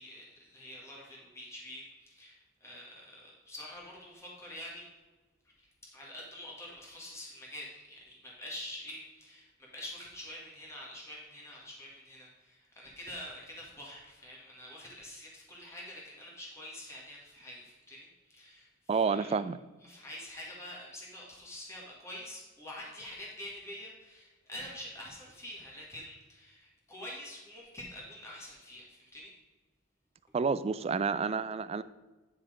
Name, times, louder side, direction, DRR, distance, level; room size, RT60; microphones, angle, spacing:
voice 1, 0.0-4.9 5.9-18.7 19.1-19.3 19.8-29.3, left 1 dB, 15° left, -4 dB, 1.7 m, -46 dB
voice 2, 18.9-19.6 30.3-31.8, right 5 dB, 30° right, 14 dB, 0.3 m, -29 dB
9.7 x 4.3 x 5.0 m, 1.2 s
head